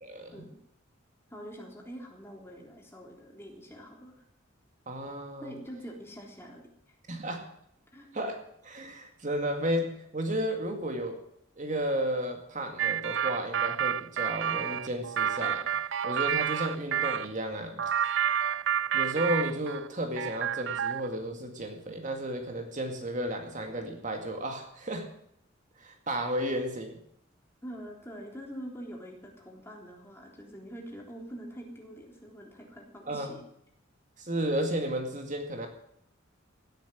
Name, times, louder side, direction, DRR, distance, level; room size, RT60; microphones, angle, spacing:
voice 1, 0.0-0.4 4.9-5.5 7.1-7.5 8.1-11.2 11.6-15.7 16.0-18.0 18.9-25.1 25.8-27.0 33.1-33.4 34.2-35.7, right 1 dB, 40° right, 4 dB, 2.2 m, -33 dB
voice 2, 1.3-4.2 5.4-7.0 7.9-8.1 27.6-33.4, equal, 10° left, 0 dB, 3.5 m, -45 dB
sound 1, 12.8-17.3 17.8-19.9 20.2-21.1, right 9 dB, 65° right, 0.5 m, -29 dB
17.0 x 9.2 x 7.5 m, 0.73 s
head